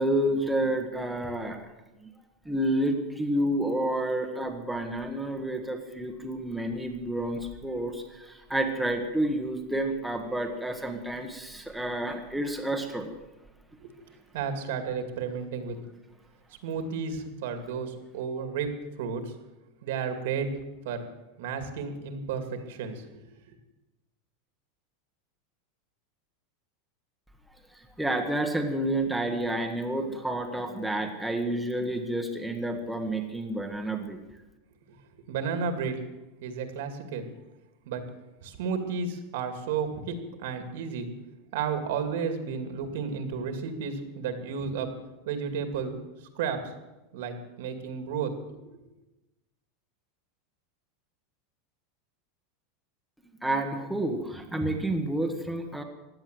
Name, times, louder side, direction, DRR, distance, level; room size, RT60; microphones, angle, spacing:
voice 1, 0.0-1.6 2.0-2.1 2.4-13.1 28.0-34.2 53.4-55.8, right 1 dB, ahead, 3 dB, 1.4 m, -29 dB
voice 2, 14.3-15.8 16.6-18.7 19.0-19.2 19.8-20.5 20.8-21.1 21.4-23.2 34.9-35.0 35.3-36.0 36.4-37.2 37.9-38.0 38.4-41.1 41.5-44.9 45.3-46.0 46.4-46.6 47.1-48.6, right 6 dB, 70° right, 7 dB, 2.4 m, -32 dB
16.0 x 10.5 x 7.8 m, 1.0 s
supercardioid pair, 160°, 0 cm